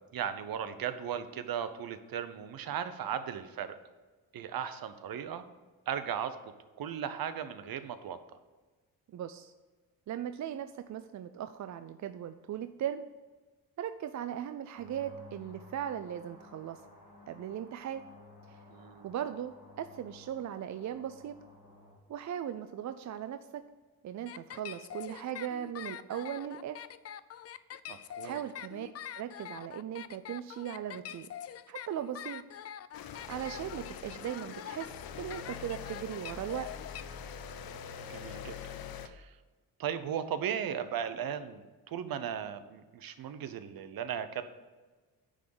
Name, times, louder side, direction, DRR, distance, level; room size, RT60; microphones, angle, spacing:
voice 1, 0.0-3.8 4.3-5.4 5.9-6.4 6.8-8.2 18.7-19.1 27.9-28.4 38.1-38.7 39.0-39.3 39.8-44.5, right 8 dB, 65° right, 11 dB, 0.8 m, -37 dB
voice 2, 9.1-9.5 10.1-13.0 13.8-16.8 17.3-18.0 18.5-18.6 19.0-21.4 22.1-23.6 24.0-26.8 28.2-28.9 29.1-31.3 31.7-32.4 33.3-34.9 35.2-36.7, right 10 dB, 50° right, 10 dB, 0.4 m, -38 dB
sound 1, 14.7-21.9, left 2 dB, 90° left, 2.5 m, -55 dB
sound 2, 24.3-37.0, left 10 dB, 40° left, 0.4 m, -44 dB
sound 3, 32.9-39.1, left 7 dB, 70° left, 0.7 m, -44 dB
10.0 x 3.8 x 6.9 m, 1.3 s
cardioid pair, 90°, 37 cm